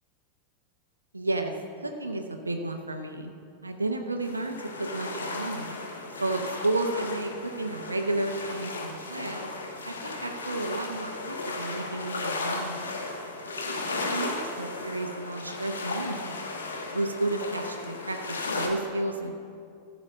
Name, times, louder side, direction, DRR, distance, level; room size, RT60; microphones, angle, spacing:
voice 1, 1.1-1.5 1.8-3.3 3.6-5.8 6.2-9.5 9.9-12.9 14.1-16.4 16.9-19.3, right 2 dB, 80° right, 5 dB, 0.7 m, -32 dB
sound 1, 4.2-18.7, left 3 dB, 70° left, 1.4 m, -35 dB
14.0 x 6.1 x 6.3 m, 2.4 s
figure-of-eight pair, 90°, 0 cm